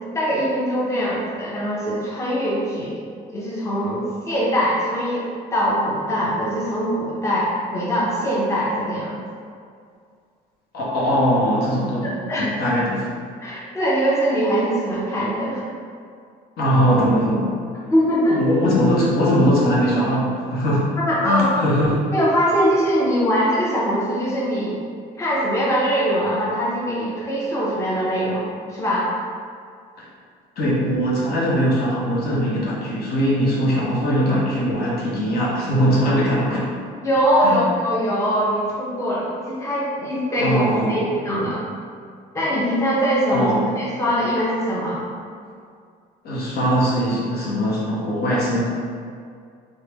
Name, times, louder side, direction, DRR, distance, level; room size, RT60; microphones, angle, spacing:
voice 1, 0.1-3.0 3.3-9.2 12.0-12.5 13.4-15.6 17.9-18.4 21.0-21.5 22.1-24.8 25.2-29.1 37.0-40.6 40.9-41.6 42.3-45.1, equal, 15° left, -7 dB, 0.7 m, -22 dB
voice 2, 10.7-12.1 12.4-13.1 16.6-17.6 18.3-20.9 21.2-22.0 30.0-30.1 30.6-36.6 37.4-37.5 40.4-41.0 43.3-43.7 46.2-48.7, equal, 65° left, -6 dB, 0.8 m, -20 dB
3.2 x 2.1 x 3.0 m, 2.2 s
cardioid pair, 110°, 17 cm